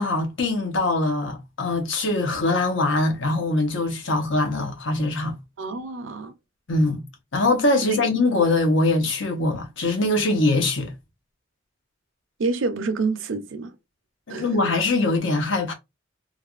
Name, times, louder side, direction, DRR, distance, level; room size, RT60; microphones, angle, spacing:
voice 1, 0.0-5.4 6.7-7.0 7.3-10.9 14.3-15.7, left 2 dB, 80° left, 0.8 m, -22 dB
voice 2, 5.6-6.3 12.4-13.7 14.3-14.5, right 3 dB, 80° right, 0.6 m, -27 dB
3.2 x 2.3 x 2.4 m
head